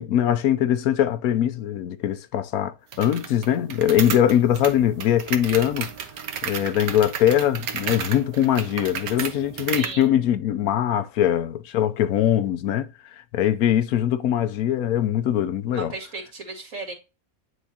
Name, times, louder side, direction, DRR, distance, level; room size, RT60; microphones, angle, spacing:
voice 1, 0.0-5.9 6.4-15.9, left 11 dB, 80° left, 1.1 m, -22 dB
sound 1, 2.9-10.0, right 8 dB, 85° right, 1.3 m, -33 dB
voice 2, 9.7-10.1 15.7-16.9, right 3 dB, 60° right, 2.4 m, -35 dB
9.4 x 3.6 x 2.8 m
omnidirectional pair, 1.5 m